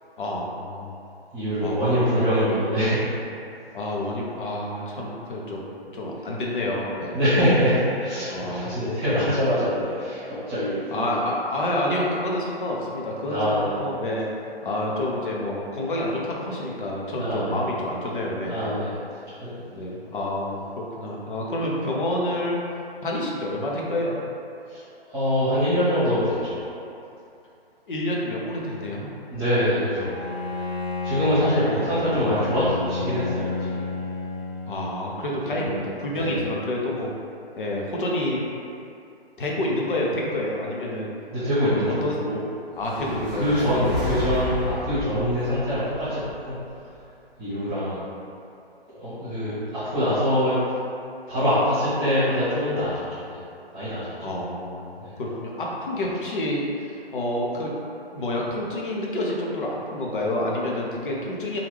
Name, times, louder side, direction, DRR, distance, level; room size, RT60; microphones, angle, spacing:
voice 1, 0.2-0.9 1.6-1.8 2.1-2.4 3.7-7.2 8.3-8.8 9.1-9.3 10.9-14.3 14.6-18.7 19.7-20.6 21.0-22.6 23.0-24.2 27.9-29.1 31.7-31.9 34.7-37.1 37.6-38.4 39.4-41.1 42.0-42.2 42.8-43.9 54.2-54.9 55.2-57.7 58.1-61.6, left 1 dB, 55° left, -3 dB, 0.7 m, -28 dB
voice 2, 1.3-3.0 7.1-11.3 13.2-13.7 17.1-17.6 18.4-18.9 19.4-19.7 20.1-20.2 24.7-24.8 25.1-26.7 29.3-30.1 31.0-33.9 35.4-35.7 36.1-36.5 41.3-42.4 43.0-46.6 47.4-48.0 48.9-50.6 51.3-53.4 53.7-54.1 55.0-55.1, equal, 25° right, -15 dB, 1.2 m, -24 dB
Bowed string instrument, 29.9-35.3, left 3 dB, 70° left, 1.0 m, -31 dB
sound 1, 42.8-47.0, left 1 dB, ahead, 1.2 m, -32 dB
3.0 x 2.4 x 3.2 m, 2.6 s
figure-of-eight pair, 135°, 31 cm